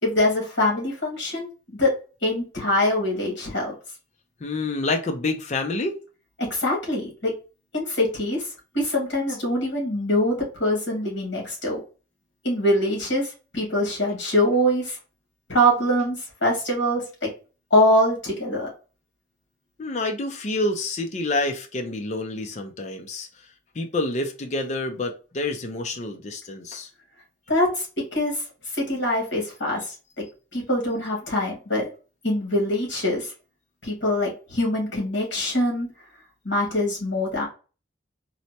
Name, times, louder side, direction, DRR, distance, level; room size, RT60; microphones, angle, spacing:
voice 1, 0.0-1.5 1.8-1.9 2.2-3.7 6.4-7.3 7.7-11.8 12.4-15.0 15.5-17.3 17.7-18.7 27.5-27.9 28.1-28.4 28.7-29.9 30.5-31.9 32.2-33.3 33.8-35.9 36.4-37.5, left 1 dB, 65° left, 1.7 m, -23 dB
voice 2, 4.4-6.0 19.8-23.3 23.8-26.9, left 2 dB, 35° left, 0.4 m, -28 dB
4.1 x 2.1 x 2.8 m
head